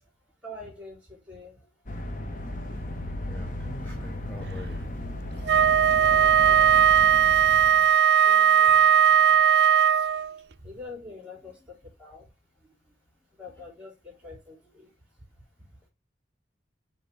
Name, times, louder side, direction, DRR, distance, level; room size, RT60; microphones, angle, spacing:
voice 1, 0.4-1.5 6.0-6.7 8.2-9.0 10.6-12.2 13.4-14.9, left 2 dB, 10° right, 3.2 m, -45 dB
sound 1, 1.9-7.9, left 1 dB, 45° left, 1.0 m, -35 dB
voice 2, 3.2-4.9 10.1-10.4 14.6-14.7, equal, 10° left, 1.0 m, -43 dB
Wind instrument woodwind instrument, 5.4-10.3, right 9 dB, 60° right, 0.4 m, -18 dB
5.5 x 3.8 x 5.5 m
head